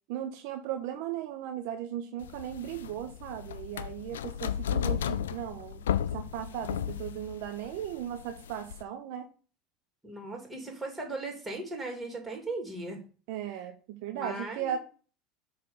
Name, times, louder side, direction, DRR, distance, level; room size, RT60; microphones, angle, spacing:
voice 1, 0.1-5.8 6.1-9.3 13.3-14.8, right 10 dB, 70° right, 6 dB, 0.8 m, -37 dB
sound 1, 2.2-8.8, left 9 dB, 90° left, 0.3 m, -34 dB
voice 2, 10.0-13.0 14.1-14.7, right 2 dB, 15° right, 1 dB, 2.7 m, -37 dB
6.9 x 3.4 x 5.5 m, 0.37 s
hypercardioid pair, 85°, 0 cm